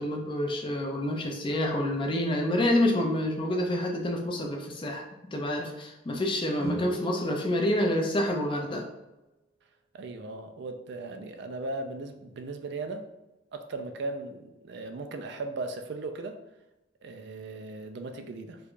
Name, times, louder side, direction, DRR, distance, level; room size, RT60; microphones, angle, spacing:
voice 1, 0.0-5.0 5.3-8.9, left 1 dB, 25° left, 1 dB, 0.4 m, -28 dB
sound 1, 6.6-8.7, equal, 15° right, 0.6 m, -40 dB
voice 2, 9.9-13.0 13.5-16.4 17.0-18.6, right 2 dB, 60° right, 6 dB, 0.3 m, -37 dB
4.5 x 2.3 x 2.5 m, 0.97 s
head